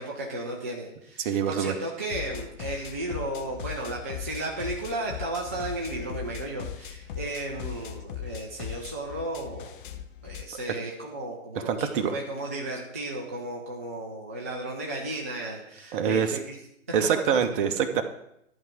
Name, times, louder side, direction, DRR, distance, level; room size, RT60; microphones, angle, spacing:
voice 1, 0.0-9.8 10.2-16.6, right 1 dB, 10° right, -2 dB, 0.3 m, -34 dB
voice 2, 1.2-1.7 11.7-12.1 15.9-16.4 16.9-18.0, right 7 dB, 40° right, 7 dB, 1.1 m, -25 dB
sound 1, 2.1-10.4, left 9 dB, 40° left, 0.8 m, -39 dB
11.0 x 4.7 x 7.4 m, 0.78 s
hypercardioid pair, 125°, 40 cm